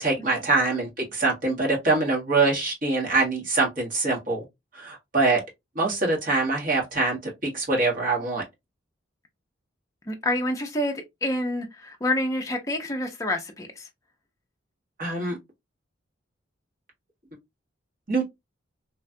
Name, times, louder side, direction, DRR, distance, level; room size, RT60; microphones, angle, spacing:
voice 1, 0.0-4.4 4.7-5.4 5.7-7.2 7.5-8.4 15.0-15.4 18.1-18.2, right 3 dB, 45° right, 1.3 m, -24 dB
voice 2, 10.1-13.8, left 1 dB, 15° left, 0.5 m, -28 dB
3.2 x 2.3 x 2.6 m
head